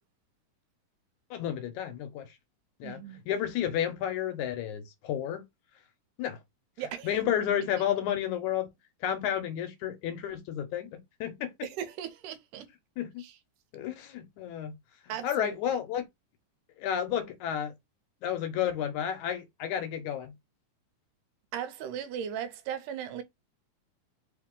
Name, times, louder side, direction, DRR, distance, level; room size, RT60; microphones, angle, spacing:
voice 1, 1.3-2.3 2.8-5.4 6.2-6.4 7.0-8.7 9.0-11.5 13.0-13.2 13.7-14.7 15.2-16.0 16.8-17.7 18.2-20.3, left 10 dB, 75° left, 2.0 m, -31 dB
voice 2, 2.8-3.2 6.8-7.2 11.6-12.7 13.2-13.4 15.1-15.6 21.5-23.2, right 9 dB, 85° right, 2.2 m, -37 dB
4.8 x 2.8 x 3.6 m
omnidirectional pair, 3.7 m